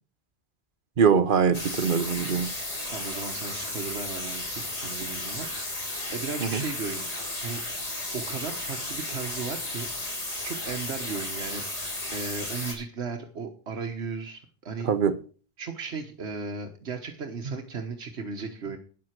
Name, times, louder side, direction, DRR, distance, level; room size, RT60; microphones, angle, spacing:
voice 1, 1.0-2.5 6.4-6.6 14.8-15.1, right 6 dB, 55° right, 1.0 m, -23 dB
sound 1, 1.5-12.7, left 1 dB, 35° left, 2.4 m, -34 dB
voice 2, 2.9-7.1 7.4-7.6 8.1-9.9 10.4-11.6 12.1-14.9 15.6-18.8, right 5 dB, 90° right, 1.5 m, -36 dB
9.9 x 7.8 x 5.9 m
omnidirectional pair, 1.1 m